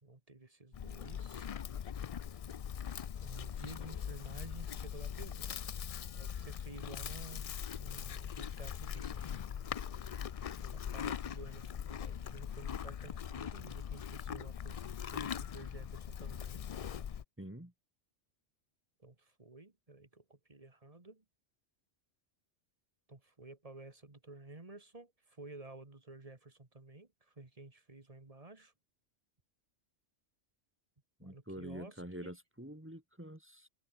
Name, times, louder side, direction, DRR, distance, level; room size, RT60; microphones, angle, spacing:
voice 1, 0.0-1.6 3.2-5.5 6.2-9.4 10.7-14.8 15.1-16.6 19.0-21.2 23.1-28.7 31.2-32.3, right 2 dB, 30° right, 2.0 m, -52 dB
Livestock farm animals working animals, 0.7-17.2, left 8 dB, 60° left, 0.4 m, -41 dB
voice 2, 17.4-17.7 31.2-33.7, equal, 10° right, 1.9 m, -46 dB
omnidirectional pair, 1.2 m